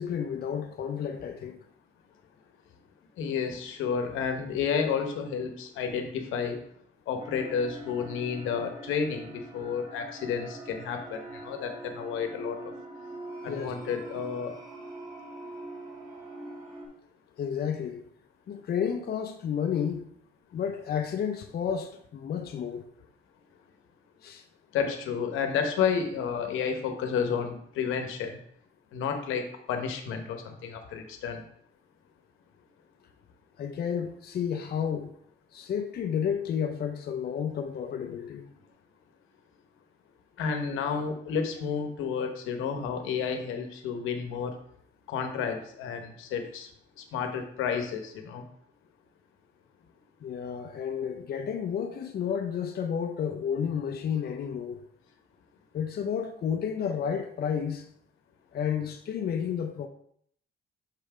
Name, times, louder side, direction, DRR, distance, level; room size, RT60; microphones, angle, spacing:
voice 1, 0.0-1.6 13.5-13.7 17.4-18.0 18.5-20.0 20.5-22.9 24.2-24.4 33.6-35.1 35.5-38.5 50.2-54.8 55.7-57.9 58.5-59.9, left 7 dB, 50° left, 0.6 m, -31 dB
voice 2, 3.2-6.6 7.1-12.7 13.4-14.6 24.7-28.4 28.9-31.4 40.4-44.5 45.1-46.7 47.0-48.4, left 6 dB, 90° left, 1.0 m, -31 dB
sound 1, 7.2-16.9, right 1 dB, 25° right, 1.9 m, -43 dB
6.6 x 3.4 x 4.8 m
cardioid pair, 90°, 20 cm